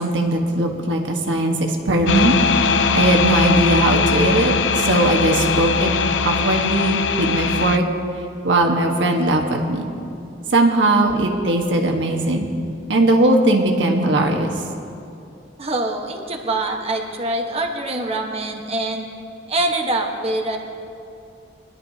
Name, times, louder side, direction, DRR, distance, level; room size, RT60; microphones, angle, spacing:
voice 1, 0.0-2.3 2.9-5.9 6.2-7.8 8.4-9.8 10.5-12.5 12.9-14.5, right 1 dB, 90° right, 2 dB, 1.4 m, -19 dB
sound 1, 2.1-7.8, left 5 dB, 85° left, 0.5 m, -20 dB
voice 2, 15.6-19.1 19.5-20.6, right 2 dB, 35° right, 2 dB, 1.2 m, -24 dB
22.0 x 11.5 x 2.8 m, 2.6 s
head